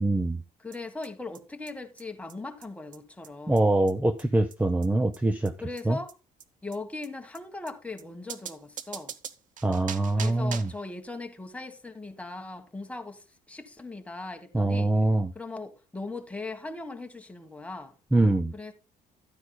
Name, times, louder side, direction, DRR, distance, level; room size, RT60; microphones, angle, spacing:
voice 1, 0.0-0.4 3.5-5.5 5.9-6.0 9.6-10.7 14.5-15.3 18.1-18.5, right 2 dB, 10° right, 0.6 m, -24 dB
voice 2, 0.6-3.7 5.6-6.1 6.6-9.1 10.2-14.9 15.3-17.9 18.5-18.7, left 3 dB, 10° left, 1.4 m, -39 dB
sound 1, 0.7-0.8 1.0-1.1 1.3-1.4 1.7-1.8 2.0-2.1 2.3-2.4 2.6-2.7 2.9-3.0 3.2-3.3 3.6-3.7 3.9-4.0 4.2-4.3 4.5-4.6 4.8-4.9 5.1-5.2 5.5-5.6 5.8-5.9 6.1-6.2 6.4-6.5 6.7-6.8 7.0-7.1 7.3-7.4 7.7-7.8 8.0-8.1 8.3-10.8, right 8 dB, 50° right, 0.8 m, -41 dB
13.0 x 9.4 x 2.2 m
cardioid pair, 110°, 17 cm